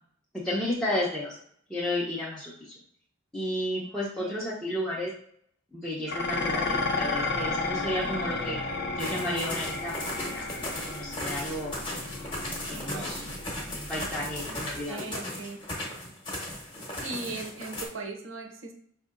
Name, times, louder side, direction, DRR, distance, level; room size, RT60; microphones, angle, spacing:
voice 1, 0.4-1.3 1.7-2.5 3.3-5.1 5.7-8.6 8.9-10.6 10.9-11.8 12.7-13.3 13.7-15.1, left 1 dB, 5° left, -8 dB, 0.6 m, -32 dB
voice 2, 3.8-4.4 12.7-13.1 14.5-15.6 17.0-18.7, right 3 dB, 70° right, 3 dB, 0.7 m, -39 dB
Dishes pots and pans, 6.1-14.9, left 3 dB, 50° left, 0.6 m, -33 dB
sound 1, 9.0-17.9, left 1 dB, 25° left, 0.9 m, -37 dB
5.3 x 2.7 x 2.4 m, 0.65 s
head